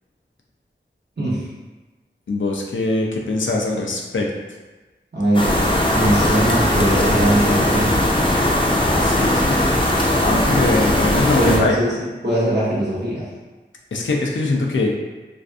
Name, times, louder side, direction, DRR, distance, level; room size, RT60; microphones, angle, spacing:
voice 1, 2.3-4.3 9.0-9.6 10.1-11.7 13.9-14.9, left 2 dB, 90° left, -1 dB, 0.4 m, -22 dB
voice 2, 5.1-8.0 11.3-13.3, right 1 dB, 65° right, -8 dB, 0.9 m, -21 dB
sound 1, 5.3-11.6, left 1 dB, 25° left, 0.4 m, -18 dB
2.6 x 2.4 x 2.3 m, 1.2 s
wide cardioid pair, 45°, 19 cm